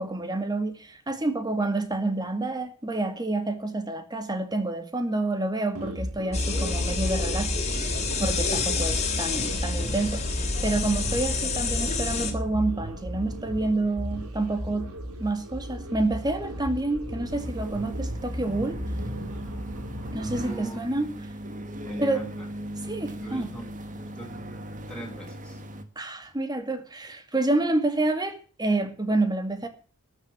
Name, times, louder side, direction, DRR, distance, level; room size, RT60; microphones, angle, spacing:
voice 1, 0.0-14.9 15.2-18.8 20.1-21.1 22.0-22.2 22.8-23.5 26.0-29.7, right 2 dB, 20° right, 2.0 m, -28 dB
sound 1, 5.7-20.5, equal, 75° right, 4.0 m, -35 dB
sound 2, 6.3-12.3, left 3 dB, 30° left, 3.2 m, -28 dB
sound 3, 17.3-25.8, right 1 dB, 35° right, 1.8 m, -39 dB
voice 2, 20.4-20.8 21.8-22.5 23.2-23.7 24.0-24.3 24.9-25.6, right 1 dB, 5° left, 5.3 m, -40 dB
13.0 x 8.1 x 8.7 m
head